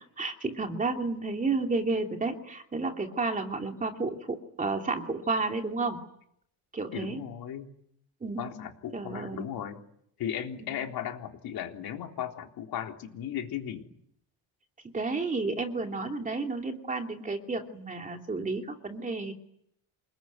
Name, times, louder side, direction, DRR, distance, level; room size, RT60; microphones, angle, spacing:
voice 1, 0.0-6.0 6.7-7.2 8.2-8.6 8.9-9.4 10.7-10.8 14.9-19.3, right 3 dB, 20° right, 3 dB, 2.8 m, -31 dB
voice 2, 6.9-7.7 8.4-9.8 10.2-13.9, left 10 dB, 65° left, 3 dB, 3.7 m, -36 dB
28.5 x 20.5 x 9.4 m, 0.72 s
cardioid pair, 160°, 40 cm